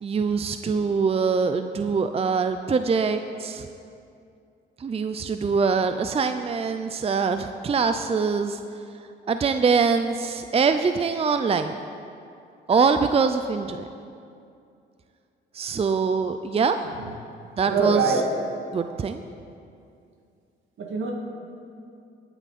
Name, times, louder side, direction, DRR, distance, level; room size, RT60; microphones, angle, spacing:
voice 1, 0.0-3.7 4.8-8.6 9.3-11.8 12.7-13.9 15.5-16.8 17.6-18.2 18.7-19.2, right 5 dB, 30° right, 8 dB, 0.5 m, -23 dB
voice 2, 17.6-18.2 20.8-21.1, right 4 dB, 75° right, 0 dB, 2.3 m, -23 dB
19.0 x 9.6 x 4.3 m, 2.5 s
cardioid pair, 90°, 20 cm